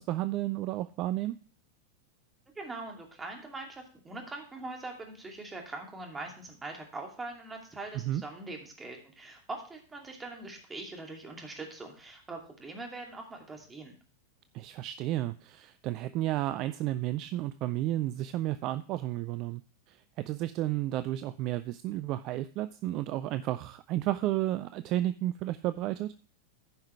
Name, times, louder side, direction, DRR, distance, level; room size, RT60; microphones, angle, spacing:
voice 1, 0.0-1.3 8.0-8.2 14.5-19.6 19.9-26.1, right 14 dB, 40° right, 12 dB, 0.4 m, -32 dB
voice 2, 2.5-13.9, right 2 dB, 15° right, 2 dB, 2.7 m, -42 dB
15.0 x 5.6 x 3.3 m, 0.41 s
figure-of-eight pair, 90°, 0 cm